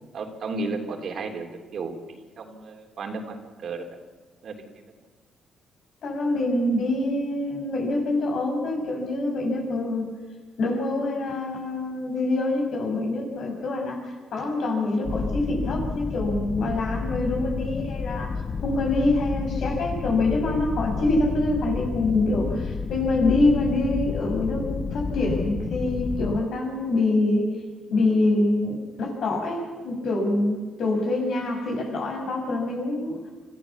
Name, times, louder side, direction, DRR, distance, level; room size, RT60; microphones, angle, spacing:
voice 1, 0.1-3.9 4.4-4.7, right 3 dB, 60° right, 4 dB, 3.2 m, -34 dB
voice 2, 6.0-10.1 10.6-27.5 27.9-33.2, left 2 dB, 65° left, 1 dB, 6.3 m, -25 dB
sound 1, 15.0-26.4, left 4 dB, 40° left, 1.0 m, -30 dB
25.0 x 14.5 x 7.2 m, 1.4 s
cardioid pair, 90°, 0 cm